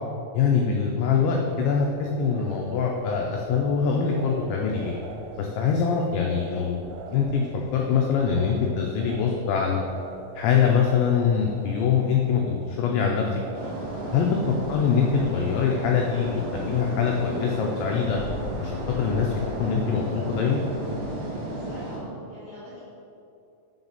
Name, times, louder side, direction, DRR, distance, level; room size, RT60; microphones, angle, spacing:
voice 1, 0.3-4.9 5.4-9.8 10.4-13.7 14.1-18.2 18.6-20.6, left 6 dB, 90° left, 0 dB, 2.5 m, -24 dB
sound 1, 1.4-20.5, right 4 dB, 85° right, 3.3 m, -45 dB
sound 2, 13.5-22.0, right 1 dB, 55° right, 2.8 m, -33 dB
voice 2, 21.4-22.8, left 1 dB, 70° left, -8 dB, 1.7 m, -44 dB
7.4 x 6.9 x 4.0 m, 2.6 s
omnidirectional pair, 5.9 m